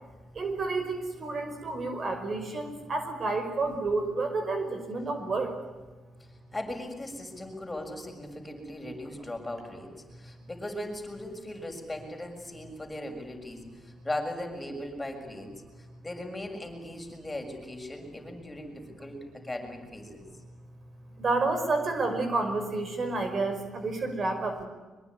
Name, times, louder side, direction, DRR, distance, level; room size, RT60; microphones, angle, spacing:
voice 1, 0.3-5.5 21.2-24.7, right 3 dB, 45° right, 7 dB, 5.5 m, -30 dB
voice 2, 6.5-15.5 15.8-20.2, left 1 dB, 15° left, 3 dB, 6.6 m, -38 dB
24.0 x 22.0 x 9.7 m, 1.3 s
cardioid pair, 90°, 0 cm